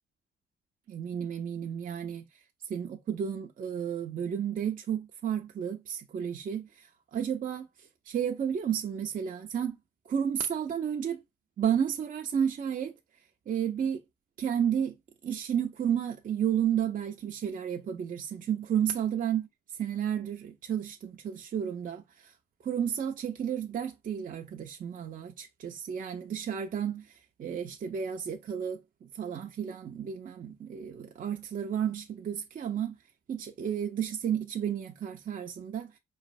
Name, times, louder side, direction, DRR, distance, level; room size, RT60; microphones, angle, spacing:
voice 1, 0.9-2.2 2.7-6.9 7.1-7.7 8.1-9.8 10.1-11.2 11.6-12.9 13.5-14.0 14.4-14.9 15.2-19.5 19.8-22.0 22.6-27.0 27.4-32.9 33.3-35.9, right 8 dB, 40° right, 0.6 m, -32 dB
4.5 x 3.2 x 2.5 m
cardioid pair, 90°, 20 cm